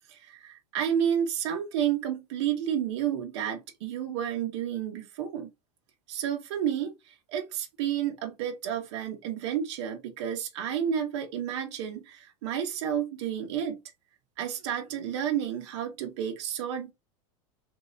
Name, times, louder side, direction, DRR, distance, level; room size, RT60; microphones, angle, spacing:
voice 1, 0.1-5.5 6.1-6.9 7.3-13.8 14.4-16.9, right 9 dB, 55° right, 0.9 m, -31 dB
3.3 x 2.8 x 3.8 m
supercardioid pair, 165°, 17 cm